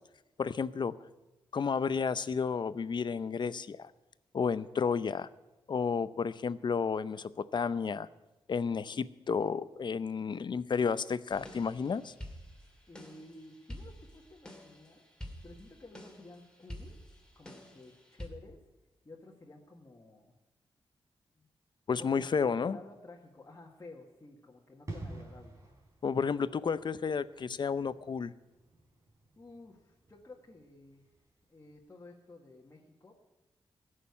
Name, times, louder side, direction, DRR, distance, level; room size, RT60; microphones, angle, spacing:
voice 1, 0.4-0.9 1.5-3.9 4.3-5.3 5.7-8.1 8.5-12.1 21.9-22.8 26.0-28.3, left 5 dB, 50° left, 16 dB, 0.6 m, -31 dB
sound 1, 11.3-18.3, equal, 10° left, 2.7 m, -49 dB
voice 2, 12.9-15.0 15.4-17.0 17.4-18.6 19.0-20.3 21.4-21.5 22.0-25.6 29.4-31.1 31.5-33.1, left 2 dB, 30° left, -1 dB, 1.8 m, -52 dB
sound 2, 24.9-31.4 31.6-31.8, right 2 dB, 30° right, 3.9 m, -49 dB
14.5 x 6.6 x 9.6 m, 1.0 s
cardioid pair, 70°, 10 cm